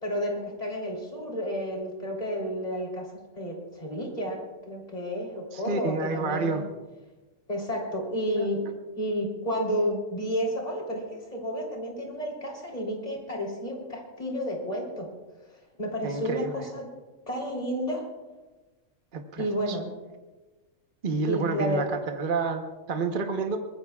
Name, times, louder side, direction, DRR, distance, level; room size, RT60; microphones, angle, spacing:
voice 1, 0.0-3.1 3.3-6.6 7.5-8.6 8.9-15.1 15.5-16.9 17.3-18.0 19.4-19.9 21.2-21.9, equal, 30° left, -1 dB, 3.5 m, -31 dB
voice 2, 5.5-6.6 8.4-8.5 16.0-16.6 19.1-19.8 21.0-23.6, right 4 dB, 40° right, 5 dB, 1.2 m, -29 dB
23.0 x 20.0 x 2.4 m, 1.2 s
omnidirectional pair, 1.3 m